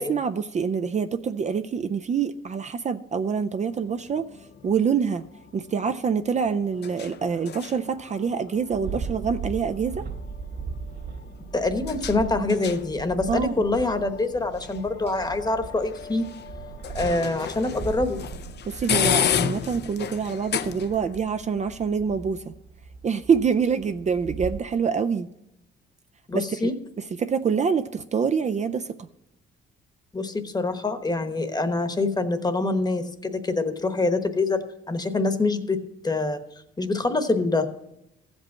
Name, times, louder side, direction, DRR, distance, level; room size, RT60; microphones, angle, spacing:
voice 1, 0.0-4.3 4.6-5.2 5.5-10.1 13.3-13.5 18.7-22.5 23.0-25.3 26.3-26.6 27.0-29.0, right 6 dB, 35° right, 9 dB, 0.5 m, -26 dB
sound 1, 3.7-21.2, left 9 dB, 60° left, 0.6 m, -33 dB
sound 2, 8.6-24.6, right 5 dB, 55° right, 1.9 m, -39 dB
voice 2, 11.5-16.2 16.9-18.2 26.3-26.7 30.1-36.4 36.8-37.7, left 3 dB, 20° left, 8 dB, 1.1 m, -25 dB
14.5 x 5.3 x 7.1 m, 0.85 s
cardioid pair, 90°, 20 cm